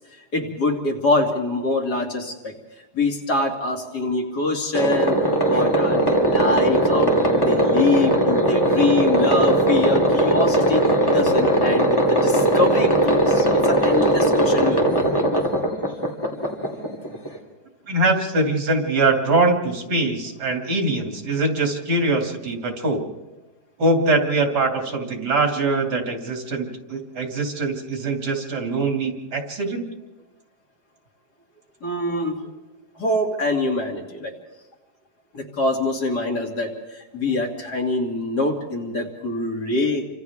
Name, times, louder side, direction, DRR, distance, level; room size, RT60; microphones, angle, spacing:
voice 1, 0.3-2.5 2.9-5.2 5.4-10.8 11.1-14.8 31.8-32.3 33.0-34.3 35.3-36.7 37.1-40.0, left 2 dB, 75° left, 0 dB, 3.3 m, -24 dB
sound 1, 4.7-17.4, right 1 dB, 15° left, 3.2 m, -19 dB
voice 2, 17.9-23.0 23.8-29.8, right 2 dB, 90° right, 2 dB, 3.2 m, -22 dB
29.5 x 25.0 x 3.6 m, 1.1 s
omnidirectional pair, 1.7 m